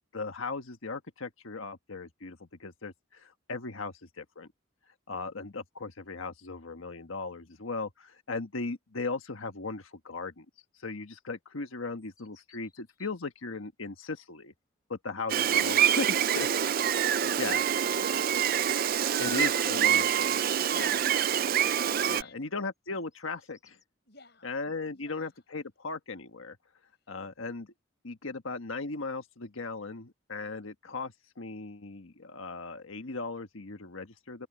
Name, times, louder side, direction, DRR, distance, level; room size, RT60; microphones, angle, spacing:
voice 1, 0.1-4.5 5.1-10.4 10.8-14.5 14.9-16.5 17.2-17.6 19.2-20.4 20.7-21.0 21.5-21.7 22.1-23.8 24.4-26.6 27.1-27.7 28.0-34.5, left 3 dB, 80° left, 1.4 m, -37 dB
sound 1, 12.0-13.1 16.5-18.9 22.7-23.8, left 5 dB, 20° left, 4.8 m, -65 dB
Gull seagull, 15.3-22.2, right 9 dB, 45° right, 0.4 m, -26 dB
voice 2, 24.0-24.5 24.9-25.5 26.9-27.1, left 3 dB, 55° left, 7.6 m, -61 dB
open air
head